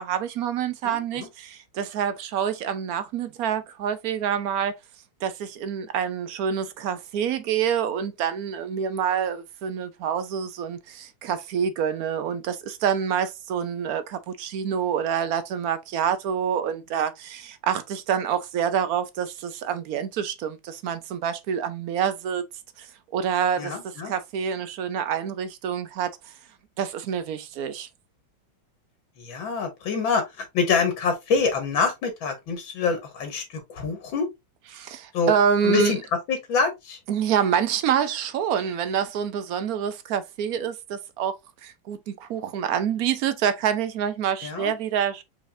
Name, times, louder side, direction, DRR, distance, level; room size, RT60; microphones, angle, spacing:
voice 1, 0.0-4.7 5.2-22.4 22.8-22.9 23.1-26.3 26.8-27.9 34.7-35.9 37.1-41.4 41.6-45.2, right 8 dB, 70° right, 0.9 m, -27 dB
voice 2, 0.8-1.3 23.6-24.1 29.2-34.3 35.1-35.3 35.6-36.0 36.3-37.0 44.4-44.7, left 5 dB, 90° left, 2.0 m, -26 dB
4.8 x 4.1 x 2.5 m
omnidirectional pair, 2.1 m